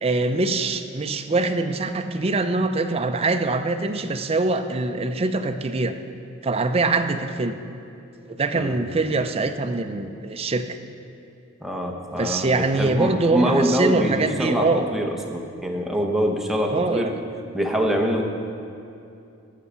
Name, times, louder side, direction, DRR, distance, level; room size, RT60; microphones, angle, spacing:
voice 1, 0.0-5.9 6.4-7.6 8.2-10.7 12.2-14.9 16.7-17.1, right 3 dB, 30° right, 7 dB, 0.5 m, -23 dB
voice 2, 11.6-17.1 17.5-18.2, equal, ahead, 1 dB, 0.9 m, -24 dB
12.5 x 5.6 x 6.9 m, 2.6 s
head